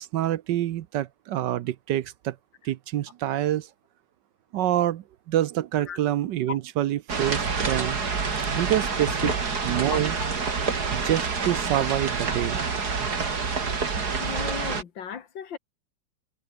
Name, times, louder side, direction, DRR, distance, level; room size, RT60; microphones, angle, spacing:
voice 1, 0.0-2.3 2.6-3.7 4.5-8.0 8.6-9.3 9.6-10.1 10.9-12.7 13.0-13.1, right 12 dB, 70° right, 1.3 m, -26 dB
sound 1, 7.1-14.8, right 5 dB, 55° right, 3.1 m, -27 dB
voice 2, 14.2-15.6, left 8 dB, 75° left, 2.4 m, -34 dB
omnidirectional pair, 2.0 m